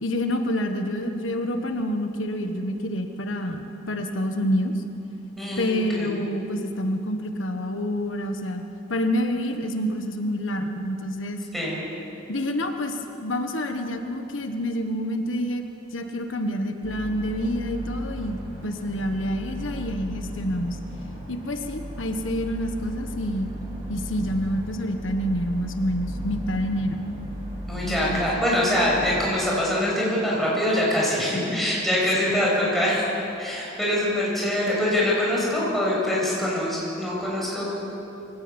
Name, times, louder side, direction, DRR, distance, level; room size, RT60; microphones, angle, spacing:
voice 1, 0.0-4.7 5.6-11.4 12.3-15.6 15.9-18.4 18.6-20.8 21.3-23.5 23.9-27.0 27.8-28.2 32.3-32.8, equal, 85° left, 5 dB, 1.5 m, -28 dB
voice 2, 5.4-6.1 11.5-11.8 27.7-33.1 33.4-37.6, left 1 dB, ahead, -6 dB, 7.3 m, -24 dB
sound 1, 16.8-29.3, equal, 30° right, 5.9 m, -36 dB
24.0 x 16.0 x 8.9 m, 3.0 s
head